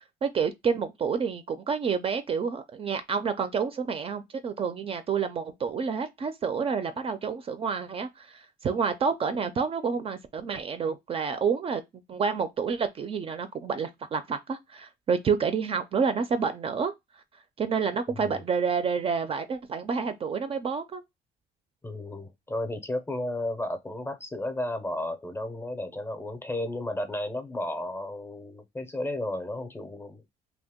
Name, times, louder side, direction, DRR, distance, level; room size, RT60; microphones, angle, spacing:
voice 1, 0.2-11.8 12.1-16.9 17.6-21.0, right 6 dB, 35° right, 0.4 m, -29 dB
voice 2, 21.8-30.2, left 1 dB, 15° left, 0.5 m, -33 dB
2.7 x 2.1 x 3.5 m
cardioid pair, 110°, 17 cm